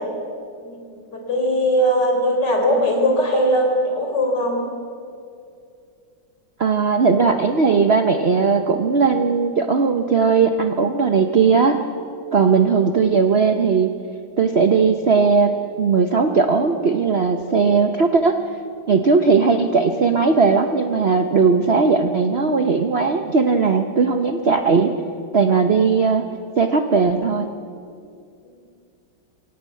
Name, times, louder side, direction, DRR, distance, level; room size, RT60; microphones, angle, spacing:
voice 1, 1.1-4.7, equal, 60° left, 2 dB, 4.5 m, -19 dB
voice 2, 6.6-11.8 12.3-13.9 14.4-15.5 15.8-18.4 18.9-24.9 25.3-26.2 26.6-27.5, right 5 dB, 45° right, 6 dB, 0.8 m, -18 dB
22.5 x 17.5 x 8.3 m, 2.4 s
omnidirectional pair, 2.1 m